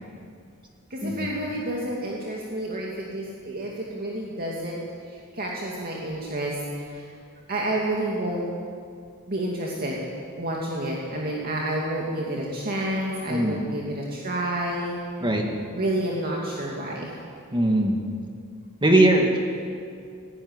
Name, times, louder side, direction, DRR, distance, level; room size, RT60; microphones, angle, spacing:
voice 1, 0.9-7.0 7.5-8.5 9.3-10.0 10.4-15.0 15.7-17.1, right 1 dB, 45° right, -3 dB, 2.4 m, -29 dB
voice 2, 13.3-13.7 15.2-15.4 17.5-18.0 18.8-19.4, right 1 dB, 20° right, 2 dB, 2.0 m, -20 dB
17.5 x 16.5 x 9.7 m, 2.3 s
head